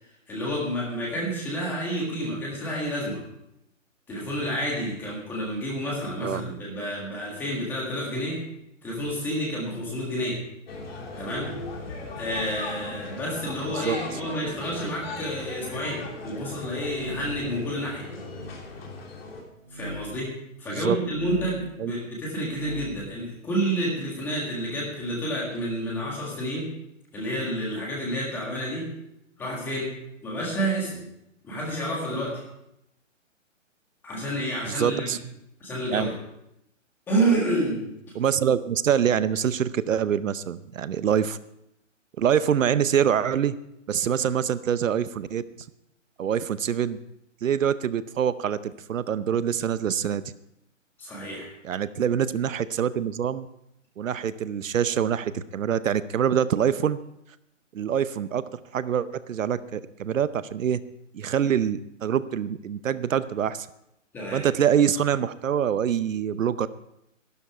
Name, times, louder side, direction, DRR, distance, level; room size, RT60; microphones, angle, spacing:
voice 1, 0.3-3.2 4.1-8.4 8.8-10.4 11.2-11.6 12.2-18.1 19.7-26.7 27.1-28.9 29.4-31.0 31.4-32.4 34.0-35.1 35.6-36.2 37.1-37.9 51.0-51.5 64.1-64.5, right 1 dB, 5° left, -3 dB, 1.7 m, -29 dB
sound 1, 10.7-19.4, left 3 dB, 50° left, 3.0 m, -38 dB
sound 2, 16.5-17.5 18.2-18.6 19.6-20.0 20.9-21.6 22.3-23.0, left 1 dB, 25° right, 5.2 m, -38 dB
voice 2, 34.7-35.2 35.9-36.1 38.1-41.4 42.2-43.6 43.9-45.4 46.2-47.0 47.4-50.2 51.6-53.5 54.0-57.0 57.7-58.4 58.7-60.8 61.1-63.7 64.3-66.7, right 8 dB, 80° right, 15 dB, 0.8 m, -25 dB
12.0 x 12.0 x 4.8 m, 0.81 s
hypercardioid pair, 175°, 39 cm